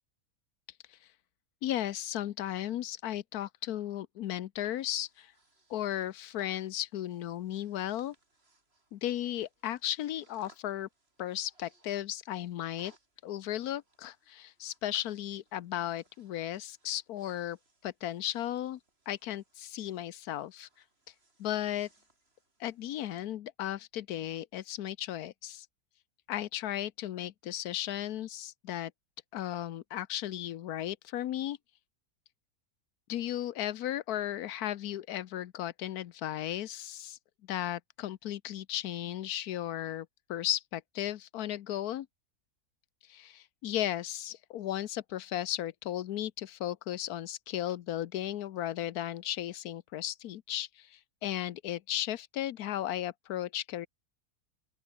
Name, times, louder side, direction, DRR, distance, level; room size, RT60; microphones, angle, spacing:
voice 1, 1.6-5.3 5.7-8.1 8.9-10.9 11.2-12.9 13.2-17.6 17.8-18.8 19.1-20.7 21.4-21.9 22.6-25.7 26.3-28.9 29.3-31.6 33.1-37.2 37.5-42.1 43.1-53.9, left 12 dB, 85° left, 1.3 m, -35 dB
Breathing, 4.5-23.3, right 2 dB, 40° right, 4.2 m, -68 dB
open air
omnidirectional pair, 1.6 m